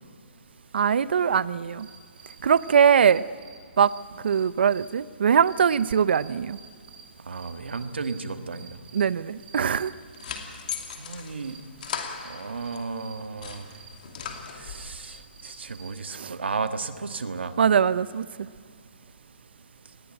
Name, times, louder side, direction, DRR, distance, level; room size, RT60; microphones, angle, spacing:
voice 1, 0.7-1.9 2.4-3.2 3.8-3.9 4.2-6.6 8.9-9.9 16.1-16.3 17.6-18.3, right 7 dB, 70° right, 17 dB, 0.6 m, -21 dB
sound 1, 1.3-16.1, right 5 dB, 50° right, 4.3 m, -51 dB
voice 2, 7.3-8.7 11.0-11.6 12.2-13.6 14.5-15.2 15.4-17.5, right 4 dB, 90° right, 9 dB, 1.5 m, -33 dB
sound 2, 9.8-12.8 13.2-14.9, left 7 dB, 55° left, 2.6 m, -38 dB
20.0 x 16.0 x 9.0 m, 2.1 s
hypercardioid pair, 150°, 6 cm